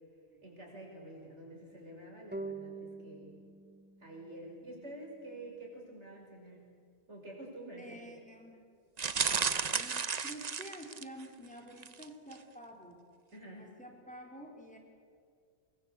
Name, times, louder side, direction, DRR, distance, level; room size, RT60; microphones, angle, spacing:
voice 1, 0.4-3.3 4.0-6.7 7.1-8.0 13.3-13.7, right 1 dB, 90° right, -1 dB, 6.6 m, -48 dB
sound 1, 2.3-5.6, right 3 dB, 10° right, 0.9 m, -46 dB
voice 2, 7.8-8.6 9.7-13.0 13.6-14.8, equal, 5° left, 1 dB, 4.1 m, -49 dB
sound 2, 9.0-11.3 11.8-12.1 12.3-12.4, right 5 dB, 40° right, 0.9 m, -33 dB
25.5 x 22.0 x 8.3 m, 2.2 s
omnidirectional pair, 1.2 m